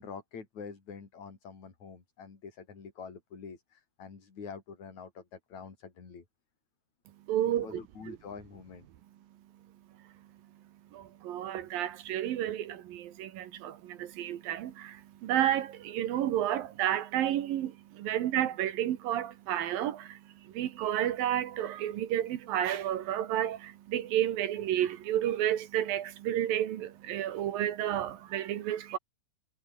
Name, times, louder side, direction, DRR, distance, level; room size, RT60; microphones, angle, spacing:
voice 1, 0.0-6.2 7.6-8.9, left 5 dB, 45° left, 5.4 m, -46 dB
voice 2, 7.3-7.8 8.1-8.2 10.9-29.0, right 11 dB, 70° right, 2.9 m, -31 dB
omnidirectional pair, 4.5 m